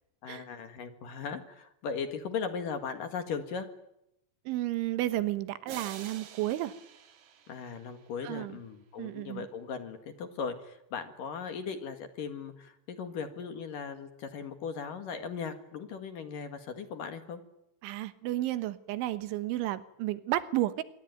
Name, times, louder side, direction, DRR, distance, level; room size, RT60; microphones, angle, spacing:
voice 1, 0.2-3.7 7.5-17.4, left 6 dB, 55° left, 7 dB, 3.0 m, -38 dB
voice 2, 4.5-6.7 8.2-8.6 9.0-9.5 17.8-20.8, right 15 dB, 85° right, 12 dB, 3.6 m, -32 dB
sound 1, 5.7-8.5, right 8 dB, 55° right, 2.1 m, -48 dB
26.5 x 22.5 x 9.4 m, 0.81 s
omnidirectional pair, 5.3 m